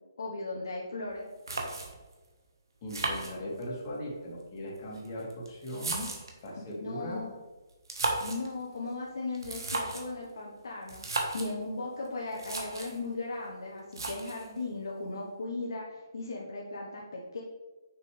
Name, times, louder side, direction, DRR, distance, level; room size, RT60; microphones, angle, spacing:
voice 1, 0.2-1.2 6.5-7.3 8.2-17.4, left 3 dB, 70° left, -3 dB, 1.1 m, -37 dB
sound 1, 1.1-1.2 1.5-2.1 2.9-3.9 4.8-6.5 7.7-8.5 9.3-10.1 10.9-11.5 12.1-12.2 12.3-13.0 13.9-14.5, right 3 dB, 75° right, 1.3 m, -35 dB
voice 2, 2.8-6.1 6.4-7.3, equal, 35° left, -3 dB, 2.1 m, -38 dB
6.5 x 5.5 x 3.3 m, 1.2 s
figure-of-eight pair, 145°, 2 cm